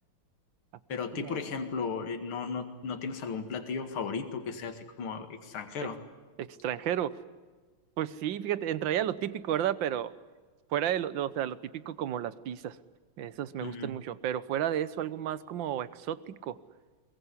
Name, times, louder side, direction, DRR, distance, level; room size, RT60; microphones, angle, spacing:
voice 1, 0.9-6.0 13.6-13.9, left 5 dB, 70° left, 6 dB, 2.8 m, -35 dB
voice 2, 6.4-7.2 8.0-10.1 10.7-12.8 13.2-16.6, right 11 dB, 65° right, 16 dB, 1.6 m, -32 dB
22.0 x 22.0 x 9.8 m, 1.3 s
omnidirectional pair, 2.4 m